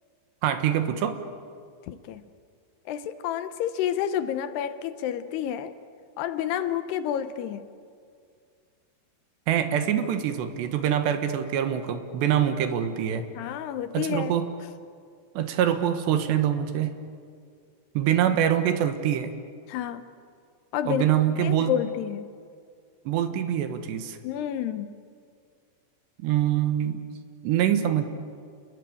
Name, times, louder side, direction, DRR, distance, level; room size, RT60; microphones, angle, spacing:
voice 1, 0.4-1.2 9.5-13.3 13.9-14.5 15.4-16.9 18.0-19.3 20.9-21.7 23.1-24.2 26.2-27.0 27.4-28.0, right 10 dB, 80° right, 8 dB, 3.5 m, -24 dB
voice 2, 1.9-2.2 2.9-5.7 6.2-7.6 13.4-14.3 19.7-20.1 20.7-21.0 21.4-22.3 24.2-25.0, left 10 dB, 75° left, 11 dB, 2.8 m, -29 dB
29.5 x 20.5 x 8.6 m, 2.2 s
omnidirectional pair, 5.0 m